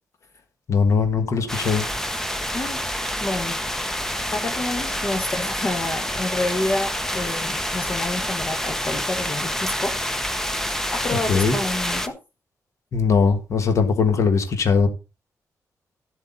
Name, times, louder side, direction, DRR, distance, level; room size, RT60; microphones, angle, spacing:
voice 1, 0.7-1.9 11.3-11.6 12.9-14.9, left 5 dB, 55° left, 1.6 m, -20 dB
sound 1, 1.5-12.1, equal, 5° left, 0.9 m, -27 dB
voice 2, 3.2-3.6 4.3-9.9 10.9-12.1, left 2 dB, 30° left, 1.2 m, -28 dB
12.0 x 7.9 x 4.1 m
wide cardioid pair, 160°, 6 cm